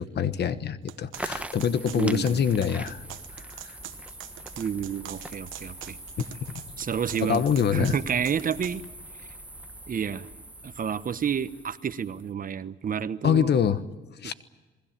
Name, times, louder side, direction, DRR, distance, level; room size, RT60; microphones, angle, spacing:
voice 1, 0.0-3.0 7.1-7.9 13.2-13.8 14.2-14.3, left 8 dB, 60° left, 13 dB, 1.3 m, -25 dB
sound 1, 0.9-8.8, right 14 dB, 90° right, 1.1 m, -44 dB
sound 2, 1.1-12.3, right 1 dB, 5° right, 1.1 m, -42 dB
voice 2, 1.9-2.4 4.6-6.0 6.8-7.4 7.7-8.8 9.9-10.3 10.6-13.5 14.2-14.3, right 7 dB, 45° right, 13 dB, 1.1 m, -30 dB
27.0 x 21.0 x 7.6 m, 1.2 s
cardioid pair, 90°, 20 cm